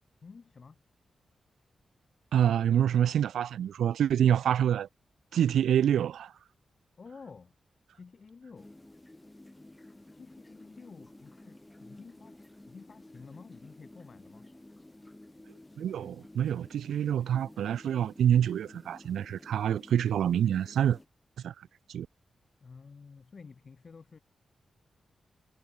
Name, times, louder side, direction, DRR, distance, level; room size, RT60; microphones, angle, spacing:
voice 1, 0.2-0.8 6.9-7.6 7.9-8.7 10.1-14.5 22.6-24.2, left 5 dB, 55° left, 2.3 m, -51 dB
voice 2, 2.3-4.9 5.3-6.3 15.8-21.0 21.4-21.5 21.9-22.1, right 9 dB, 85° right, 0.4 m, -26 dB
sound 1, 8.6-21.1, left 1 dB, 20° left, 1.4 m, -53 dB
supercardioid pair, 45°, 0 cm